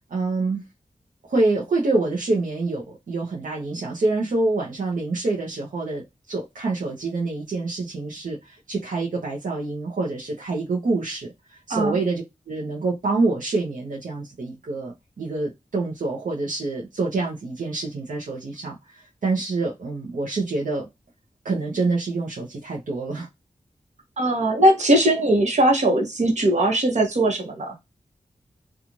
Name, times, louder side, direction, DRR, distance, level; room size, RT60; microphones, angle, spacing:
voice 1, 0.1-0.6 1.3-20.9 21.4-23.3, right 3 dB, 75° right, 0.8 m, -26 dB
voice 2, 24.2-27.7, right 1 dB, 60° right, 1.1 m, -20 dB
3.0 x 2.4 x 2.5 m
wide cardioid pair, 80°, 13 cm